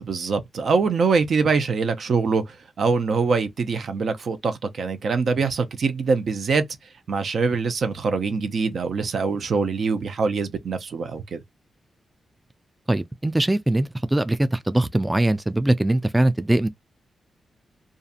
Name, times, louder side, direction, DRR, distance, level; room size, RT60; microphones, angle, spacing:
voice 1, 0.1-6.6 7.1-11.4, right 4 dB, 65° right, 0.5 m, -23 dB
voice 2, 12.9-16.7, right 1 dB, 15° right, 0.3 m, -21 dB
2.6 x 2.4 x 2.4 m
cardioid pair, 60°, 0 cm